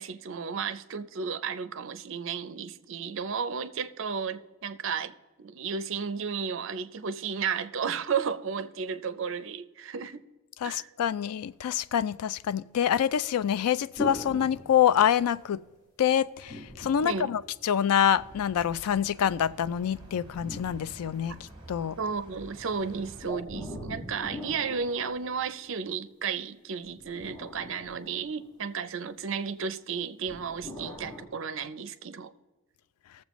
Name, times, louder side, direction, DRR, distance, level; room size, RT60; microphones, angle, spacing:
voice 1, 0.0-10.2 10.6-10.9 17.0-17.3 22.0-32.3, right 6 dB, 60° right, 0.5 m, -33 dB
voice 2, 10.6-15.6 16.0-21.4 21.7-22.0, left 9 dB, 85° left, 0.3 m, -26 dB
sound 1, 13.9-15.4 16.4-18.0 19.7-21.7 23.2-25.8 26.9-28.8 30.3-31.2, left 1 dB, 15° left, 1.8 m, -42 dB
sound 2, 18.2-23.3, right 1 dB, 20° right, 1.5 m, -49 dB
19.0 x 7.3 x 3.0 m
head